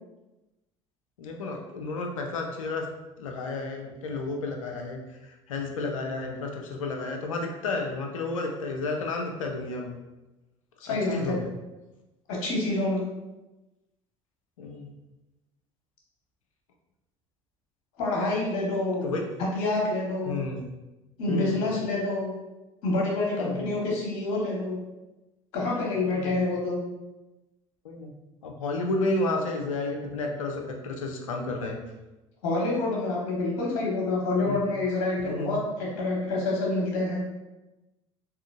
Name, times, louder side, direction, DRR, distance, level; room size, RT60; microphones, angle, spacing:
voice 1, 1.2-2.9 3.2-10.0 10.9-11.4 14.6-14.9 19.0-19.3 20.3-20.7 21.3-21.8 23.4-23.7 26.0-26.4 27.8-28.1 28.4-31.8 34.5-34.6 35.2-35.6, left 2 dB, 75° left, 2 dB, 0.5 m, -32 dB
voice 2, 10.8-11.4 12.3-13.0 18.0-19.1 19.4-20.4 21.2-22.3 22.8-24.8 25.5-26.8 32.4-37.2, left 2 dB, 60° left, -3 dB, 1.0 m, -27 dB
3.6 x 2.7 x 2.4 m, 1.0 s
figure-of-eight pair, 65°, 17 cm